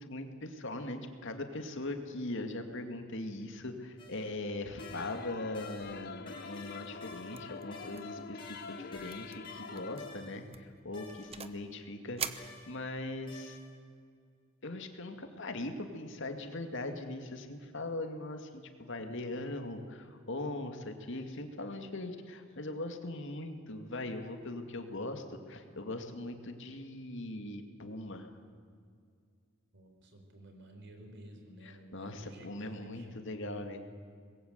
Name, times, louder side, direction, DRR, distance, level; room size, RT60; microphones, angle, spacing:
voice 1, 0.0-13.6 14.6-28.3 31.6-33.8, left 2 dB, 65° left, 6 dB, 2.3 m, -40 dB
sound 1, 4.0-4.3 4.8-10.5 10.9-11.5 12.4-12.8 13.3-13.7, left 2 dB, 25° left, 4.9 m, -53 dB
sound 2, 4.8-10.3, left 5 dB, 50° left, 0.7 m, -46 dB
sound 3, 7.3-7.6 7.9-8.2 8.5-8.6 9.1-9.4 9.8-10.0 10.5-11.7 12.2-13.2, right 7 dB, 30° right, 1.0 m, -42 dB
voice 2, 29.7-33.2, right 1 dB, 60° right, 4 dB, 4.2 m, -53 dB
25.0 x 21.0 x 8.2 m, 2.2 s
head